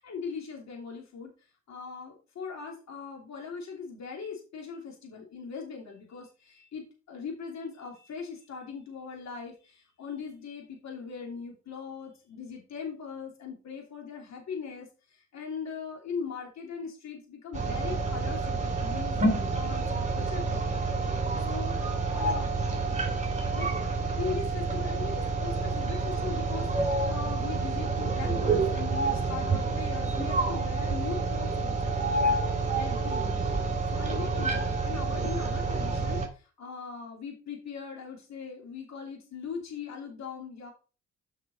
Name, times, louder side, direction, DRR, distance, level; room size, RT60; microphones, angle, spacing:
voice 1, 0.0-1.3 1.7-20.8 21.5-21.8 22.1-22.6 23.5-23.7 24.2-33.3 33.9-40.7, left 5 dB, 65° left, 1 dB, 3.1 m, -40 dB
sound 1, 17.5-36.3, right 3 dB, 25° right, 2.8 m, -28 dB
7.4 x 6.0 x 4.3 m, 0.34 s
cardioid pair, 90°, 30 cm